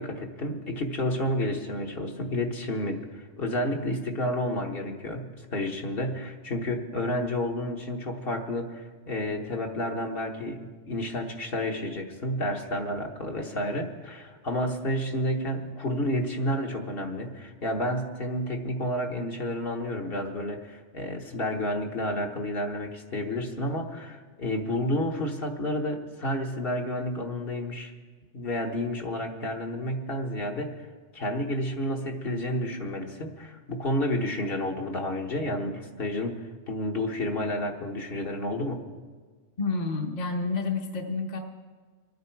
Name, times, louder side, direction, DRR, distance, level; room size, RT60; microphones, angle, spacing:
voice 1, 0.0-27.9 28.3-30.9 31.1-38.9, left 1 dB, 60° left, 2 dB, 1.5 m, -30 dB
voice 2, 39.6-41.4, left 3 dB, 40° left, 2 dB, 1.0 m, -29 dB
24.5 x 9.4 x 4.6 m, 1.5 s
omnidirectional pair, 1.2 m